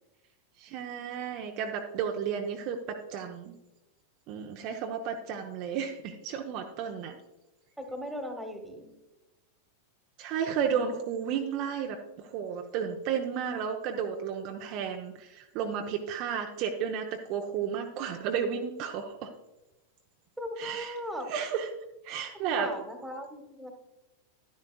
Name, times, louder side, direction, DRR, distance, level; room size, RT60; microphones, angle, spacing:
voice 1, 0.6-3.5 4.3-7.2 10.2-19.3 20.6-21.0 21.2-21.7 22.0-22.7, right 7 dB, 40° right, 3 dB, 0.8 m, -33 dB
voice 2, 7.8-8.9 20.4-21.3 22.3-23.7, equal, ahead, 4 dB, 1.5 m, -38 dB
11.5 x 10.5 x 2.3 m, 1.0 s
figure-of-eight pair, 90°, 0 cm